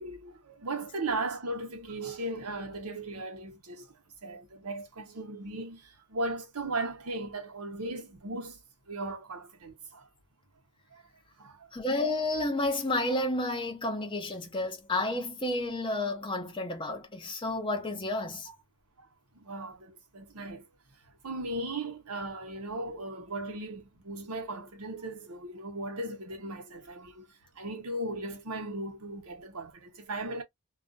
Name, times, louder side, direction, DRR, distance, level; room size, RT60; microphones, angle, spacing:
voice 1, 0.0-8.6 8.9-10.1 10.9-11.0 11.4-11.7 18.5-18.6 19.0-19.1 19.3-20.7 21.2-30.4, right 2 dB, 80° right, 0.9 m, -37 dB
voice 2, 11.7-18.5, left 2 dB, 20° left, 0.7 m, -31 dB
2.3 x 2.2 x 2.4 m
head